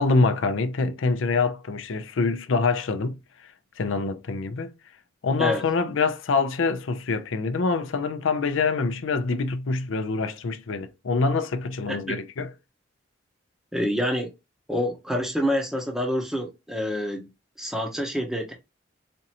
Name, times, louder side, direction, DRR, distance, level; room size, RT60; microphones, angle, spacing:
voice 1, 0.0-3.2 3.8-4.7 5.2-12.5, left 4 dB, 90° left, 0.5 m, -25 dB
voice 2, 13.7-14.3 14.7-17.3 17.6-18.5, equal, ahead, 0.7 m, -27 dB
4.3 x 2.5 x 2.8 m
head